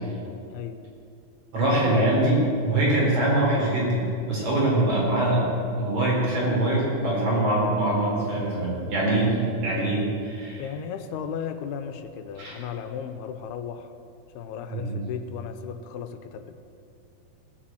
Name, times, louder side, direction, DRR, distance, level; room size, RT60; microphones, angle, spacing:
voice 1, 0.5-0.8 10.6-13.9 14.3-16.5, left 7 dB, 90° left, 9 dB, 2.8 m, -35 dB
voice 2, 1.5-5.5 5.8-10.7 12.4-12.6 14.7-15.0, right 1 dB, 45° right, -5 dB, 5.6 m, -23 dB
17.5 x 8.7 x 7.8 m, 2.5 s
omnidirectional pair, 4.5 m